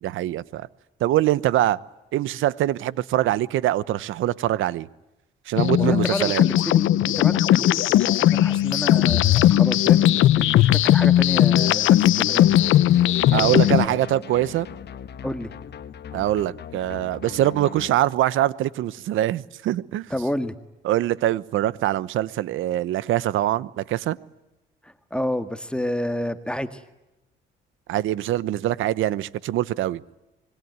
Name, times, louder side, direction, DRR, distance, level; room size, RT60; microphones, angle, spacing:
voice 1, 0.0-0.7 1.0-1.8 2.1-4.9 5.5-6.4 13.3-14.7 16.1-20.1 20.8-24.2 27.9-30.0, right 13 dB, 85° right, 20 dB, 1.0 m, -23 dB
sound 1, 5.6-13.9, left 13 dB, 85° left, 0.9 m, -18 dB
voice 2, 5.8-12.6 13.3-14.0 15.2-15.6 20.1-20.6 24.8-26.8, left 1 dB, 5° left, 10 dB, 1.8 m, -30 dB
sound 2, 12.4-18.0, left 8 dB, 55° left, 1.4 m, -40 dB
26.0 x 22.5 x 9.5 m, 0.98 s
cardioid pair, 90°, 20 cm